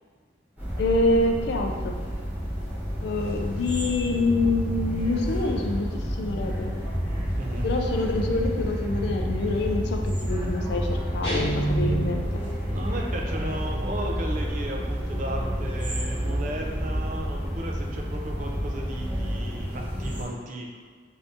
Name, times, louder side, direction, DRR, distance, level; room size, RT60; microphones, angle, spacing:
sound 1, 0.6-20.3, equal, 10° right, 1.0 m, -29 dB
voice 1, 0.8-2.0 3.0-6.8 7.6-12.4, left 2 dB, 60° left, 3 dB, 0.3 m, -26 dB
voice 2, 7.4-7.7 12.7-20.8, right 1 dB, 45° right, 0 dB, 0.4 m, -35 dB
Guitar, 11.2-12.4, right 2 dB, 30° left, 1.1 m, -27 dB
2.7 x 2.6 x 3.4 m, 1.5 s
head